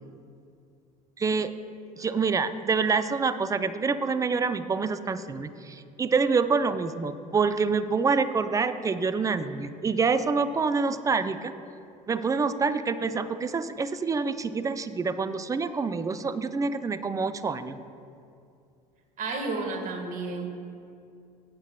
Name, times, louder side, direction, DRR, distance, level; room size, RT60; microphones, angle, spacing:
voice 1, 1.2-1.6 2.0-11.5 12.1-17.8, right 4 dB, 15° right, 12 dB, 0.5 m, -26 dB
voice 2, 19.2-20.5, right 3 dB, 40° right, 4 dB, 1.7 m, -31 dB
16.0 x 9.0 x 2.3 m, 2.5 s
figure-of-eight pair, 70°, 20 cm